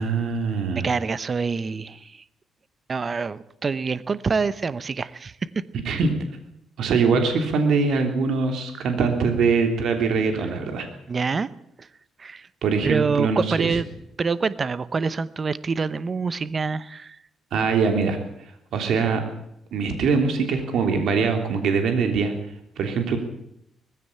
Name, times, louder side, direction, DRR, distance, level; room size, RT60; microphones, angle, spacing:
voice 1, 0.0-0.9 5.8-6.1 6.8-10.9 12.6-13.8 17.5-18.2 18.7-19.2 19.7-22.3 22.8-23.2, right 5 dB, 75° right, 5 dB, 3.3 m, -22 dB
voice 2, 0.8-2.2 2.9-5.6 11.1-11.5 11.8-11.9 12.2-12.5 12.8-13.9 14.2-17.2, right 5 dB, 35° right, 16 dB, 0.8 m, -26 dB
20.0 x 15.5 x 8.7 m, 0.78 s
cardioid pair, 120°, 0 cm